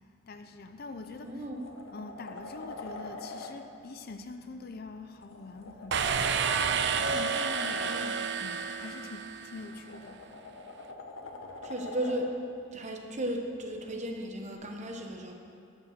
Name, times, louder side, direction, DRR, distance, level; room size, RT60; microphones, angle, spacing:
voice 1, 0.3-1.3 1.9-6.4 7.1-8.1 8.4-10.2, left 3 dB, 45° left, 8 dB, 0.4 m, -44 dB
sound 1, 0.7-0.8 1.3-3.5 5.2-7.9 9.4-12.2 14.5-14.6, left 3 dB, 70° left, 0.9 m, -44 dB
voice 2, 1.1-1.7 7.7-8.1 11.6-12.4 12.7-15.3, right 1 dB, 30° right, 2 dB, 0.8 m, -35 dB
sound 2, 5.9-9.7, right 6 dB, 50° right, 0.4 m, -30 dB
11.5 x 5.2 x 7.1 m, 2.5 s
head